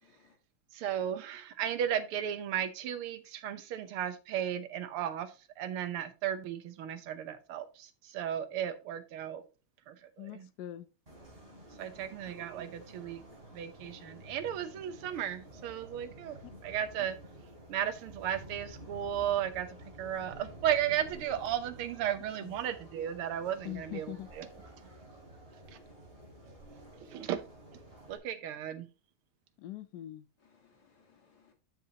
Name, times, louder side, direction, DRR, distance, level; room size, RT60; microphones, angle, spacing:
voice 1, 0.0-0.4 11.8-12.2 25.7-25.9 27.0-27.3 30.4-31.5, left 6 dB, 50° left, 2.2 m, -66 dB
voice 2, 0.7-5.3 5.6-9.4 9.9-10.5 11.8-13.2 13.5-16.4 16.6-17.2 17.7-19.7 20.0-24.5 27.1-27.4 28.1-28.9, right 10 dB, 90° right, 1.8 m, -35 dB
voice 3, 10.2-10.9 22.4-22.6 23.6-24.3 29.6-30.3, left 14 dB, 90° left, 0.9 m, -42 dB
sound 1, 11.1-28.2, right 1 dB, 25° right, 3.1 m, -51 dB
12.0 x 5.5 x 2.8 m
omnidirectional pair, 2.3 m